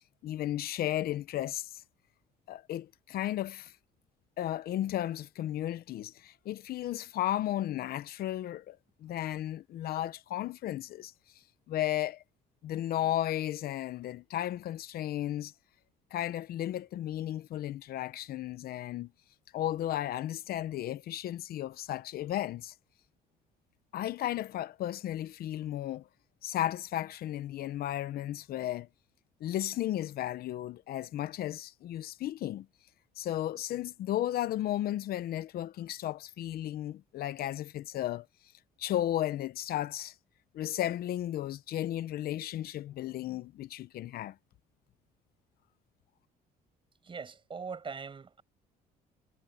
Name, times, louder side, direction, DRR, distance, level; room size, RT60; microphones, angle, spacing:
voice 1, 0.2-1.8 2.5-3.7 4.4-11.1 11.7-12.2 12.6-15.5 16.1-19.1 19.5-22.7 23.9-26.1 26.4-28.9 29.4-32.7 33.2-38.3 38.8-40.1 40.5-44.4, left 13 dB, 65° left, 0.8 m, -34 dB
voice 2, 47.0-48.4, right 5 dB, 30° right, 6.9 m, -41 dB
cardioid pair, 110°, 17 cm